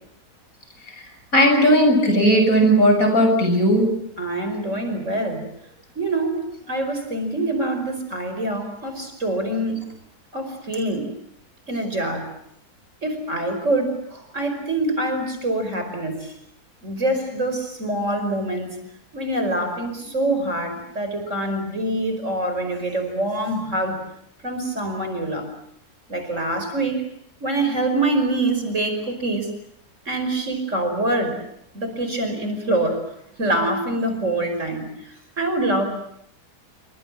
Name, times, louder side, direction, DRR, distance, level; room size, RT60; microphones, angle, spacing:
voice 1, 1.3-3.9, equal, 60° left, 5 dB, 7.7 m, -16 dB
voice 2, 4.2-5.5 6.0-9.8 10.3-11.1 11.7-12.3 13.0-16.3 16.8-18.7 19.1-24.0 24.4-25.5 26.1-27.0 27.4-29.5 30.1-31.4 31.7-33.0 33.4-35.8, right 1 dB, 50° right, 7 dB, 5.7 m, -25 dB
28.5 x 25.0 x 7.5 m, 0.71 s
omnidirectional pair, 1.7 m